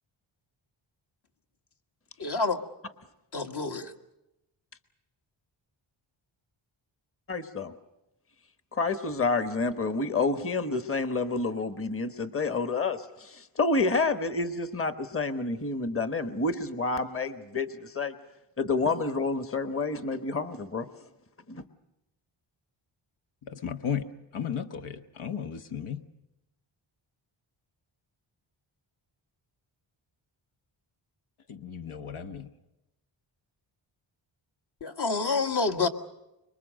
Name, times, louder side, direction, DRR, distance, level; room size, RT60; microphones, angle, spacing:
voice 1, 2.2-2.6 3.3-3.9 34.8-35.9, left 4 dB, 55° left, 5 dB, 1.7 m, -28 dB
voice 2, 7.3-7.7 8.7-18.1 18.6-20.9 21.5-21.6, left 3 dB, 25° left, 9 dB, 1.2 m, -29 dB
voice 3, 23.4-24.1 24.3-26.0 31.5-32.5, left 8 dB, 85° left, 7 dB, 1.2 m, -34 dB
25.5 x 22.5 x 6.4 m, 0.92 s
wide cardioid pair, 105°, 48 cm